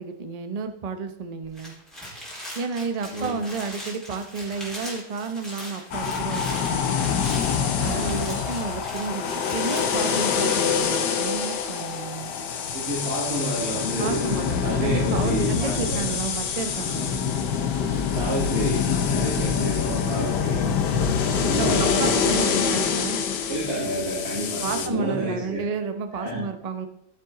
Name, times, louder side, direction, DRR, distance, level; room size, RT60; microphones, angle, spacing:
voice 1, 0.0-1.7 2.6-7.3 7.8-12.3 14.0-17.2 21.0-23.2 24.6-26.9, right 5 dB, 35° right, 7 dB, 0.7 m, -31 dB
sound 1, 1.5-9.8, equal, ahead, 3.8 m, -39 dB
sound 2, 5.1-9.6 12.0-12.1 14.1-19.9, right 2 dB, 90° right, 2.1 m, -44 dB
sound 3, 5.9-24.9, left 7 dB, 90° left, 1.5 m, -25 dB
voice 2, 7.9-8.4 10.4-10.7 12.7-16.2 16.9-17.0 18.1-20.7 21.2-22.7 23.5-25.6 26.2-26.4, equal, 65° right, -9 dB, 3.8 m, -29 dB
14.0 x 7.3 x 3.7 m, 0.74 s
omnidirectional pair, 1.8 m